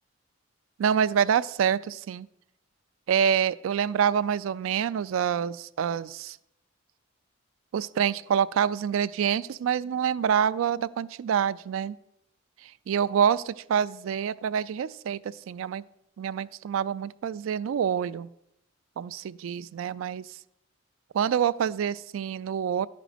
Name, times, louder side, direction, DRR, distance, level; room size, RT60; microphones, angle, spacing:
voice 1, 0.8-2.3 3.1-6.4 7.7-12.0 12.6-15.8 16.2-18.3 19.0-20.4 21.1-22.9, right 8 dB, 85° right, 17 dB, 0.3 m, -26 dB
11.0 x 5.1 x 5.0 m, 0.80 s
head